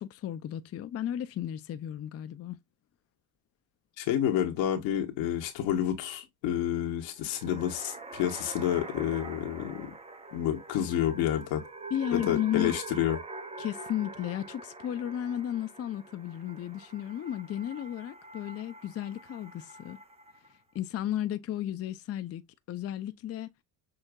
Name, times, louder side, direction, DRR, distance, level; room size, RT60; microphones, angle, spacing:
voice 1, 0.0-2.6 11.9-12.8 13.6-20.0 20.7-22.4 22.7-23.5, left 11 dB, 35° left, 0.5 m, -34 dB
voice 2, 4.0-9.9 10.3-11.6 12.1-13.2, left 10 dB, 85° left, 1.2 m, -29 dB
sound 1, 7.1-20.5, right 3 dB, 15° right, 0.6 m, -45 dB
6.5 x 2.5 x 2.3 m
cardioid pair, 95°, 44 cm